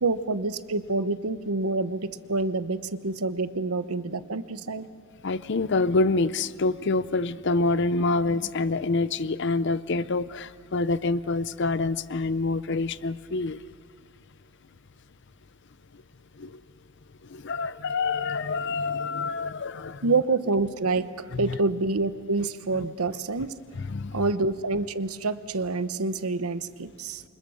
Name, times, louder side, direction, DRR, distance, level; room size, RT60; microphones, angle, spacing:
voice 1, 0.0-4.9 20.0-23.5 24.1-27.2, right 3 dB, 80° right, 12 dB, 0.9 m, -27 dB
voice 2, 5.2-13.6 16.4-16.5 17.3-20.1 21.3-21.6 23.9-24.1, left 3 dB, 55° left, 16 dB, 0.6 m, -26 dB
29.0 x 25.5 x 6.4 m, 2.1 s
head